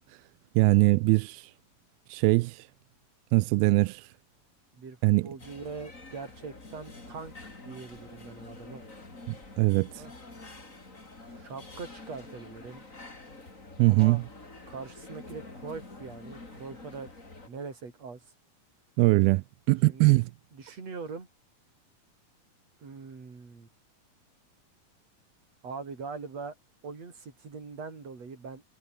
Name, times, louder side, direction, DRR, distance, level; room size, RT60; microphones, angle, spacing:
voice 1, 0.6-1.4 2.1-2.6 3.3-4.0 5.0-5.3 9.3-9.9 13.8-14.2 19.0-20.2, right 23 dB, 90° right, 2.4 m, -22 dB
voice 2, 4.7-8.8 10.0-10.1 11.2-12.8 13.9-14.2 14.7-17.1 17.5-18.3 19.9-20.2 20.5-21.3 22.8-23.7 25.6-26.5 26.8-28.6, right 4 dB, 45° right, 5.9 m, -42 dB
sound 1, 5.4-17.5, left 2 dB, 20° left, 4.4 m, -47 dB
omnidirectional pair, 4.2 m